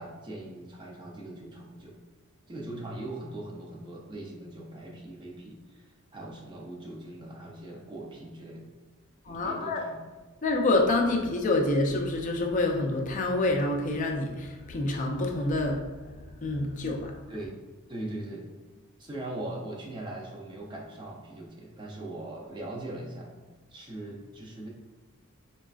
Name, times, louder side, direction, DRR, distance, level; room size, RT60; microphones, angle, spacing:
voice 1, 0.0-2.0 2.5-8.6 9.3-10.0 17.3-17.6 17.9-18.4 19.0-23.4 23.7-24.7, right 1 dB, 20° right, -1 dB, 0.4 m, -40 dB
voice 2, 9.3-9.8 10.4-15.9 16.4-17.1, left 2 dB, 35° left, 2 dB, 0.4 m, -27 dB
4.8 x 2.3 x 2.3 m, 1.3 s
head